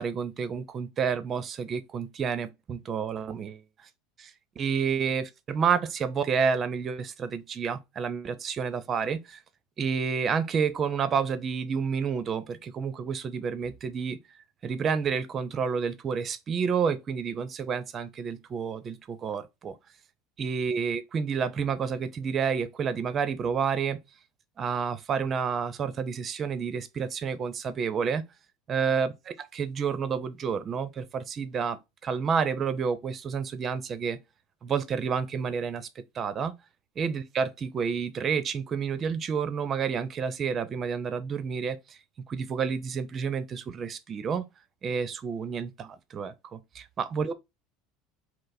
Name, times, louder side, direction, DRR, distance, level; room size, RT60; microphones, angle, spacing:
voice 1, 0.0-3.6 4.2-4.3 4.6-9.4 9.8-14.2 14.6-19.7 20.4-24.0 24.6-28.2 28.7-29.1 29.6-31.8 32.0-34.2 34.6-35.9 36.2-36.5 37.0-41.8 42.3-44.4 44.8-47.3, right 6 dB, 35° right, 0.7 m, -29 dB
5.2 x 2.0 x 4.0 m
hypercardioid pair, 95°, 0 cm